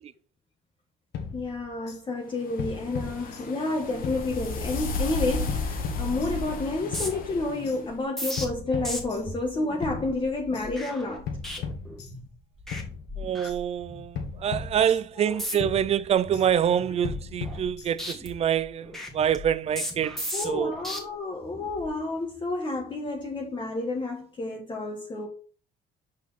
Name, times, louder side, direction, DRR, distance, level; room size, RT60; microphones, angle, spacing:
sound 1, 1.1-2.0 2.6-3.7 4.0-4.9 5.5-6.6 6.9-7.8 8.4-9.5 9.8-10.7 11.3-12.4 12.7-13.6 14.1-15.3 15.6-16.5 17.0-18.2, left 6 dB, 75° left, 1.6 m, -37 dB
voice 1, 1.3-11.3 14.9-15.3 15.6-15.7 20.3-25.3, left 2 dB, 30° left, 1.2 m, -30 dB
sound 2, 2.4-7.8, left 3 dB, 60° left, 1.5 m, -33 dB
sound 3, 6.5-12.3 12.6-12.8 13.1-14.0 14.4-14.7 15.3-15.8 16.2-17.7 18.0-21.0 21.5-21.9, left 1 dB, ahead, 1.7 m, -37 dB
voice 2, 13.2-20.7, right 9 dB, 40° right, 0.4 m, -26 dB
5.7 x 5.0 x 4.1 m
cardioid pair, 110°, 17 cm